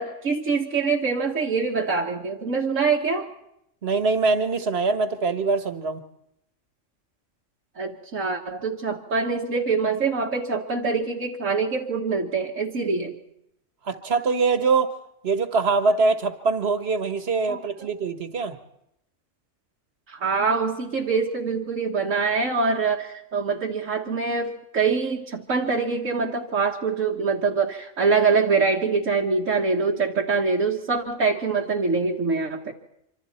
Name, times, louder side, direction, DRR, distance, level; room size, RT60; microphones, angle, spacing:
voice 1, 0.0-3.3 7.8-13.2 17.5-17.9 20.1-32.7, right 4 dB, 85° right, -2 dB, 2.0 m, -24 dB
voice 2, 3.8-6.0 13.8-14.9 15.2-18.6, right 4 dB, 55° right, 9 dB, 1.8 m, -23 dB
26.0 x 25.5 x 4.4 m, 0.78 s
omnidirectional pair, 1.3 m